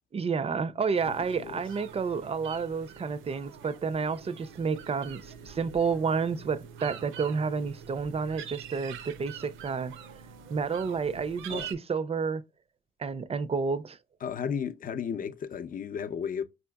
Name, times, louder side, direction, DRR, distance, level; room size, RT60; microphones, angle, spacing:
voice 1, 0.1-10.0 10.5-12.4 13.0-14.0, right 5 dB, 30° right, 0.4 m, -30 dB
sound 1, 0.9-11.7, right 8 dB, 80° right, 0.5 m, -45 dB
voice 2, 1.0-1.5 11.5-11.7 14.2-16.4, left 7 dB, 45° left, 0.6 m, -34 dB
4.9 x 2.8 x 2.2 m
cardioid pair, 90°, 20 cm